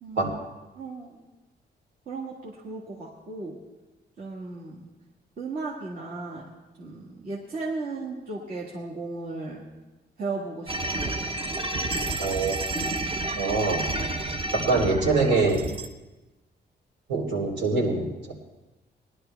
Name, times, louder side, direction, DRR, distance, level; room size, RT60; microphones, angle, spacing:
voice 1, 0.0-0.4 0.8-1.2 2.1-3.6 4.2-4.9 5.4-6.5 6.8-9.6 10.2-11.2, right 3 dB, 55° right, -5 dB, 1.8 m, -35 dB
sound 1, 10.7-15.9, right 2 dB, 30° right, 0.8 m, -30 dB
voice 2, 12.2-12.6 13.3-13.8 14.7-15.6 17.1-18.3, right 3 dB, 80° right, -1 dB, 3.4 m, -24 dB
19.5 x 11.5 x 3.4 m, 1.1 s
wide cardioid pair, 155°, 18 cm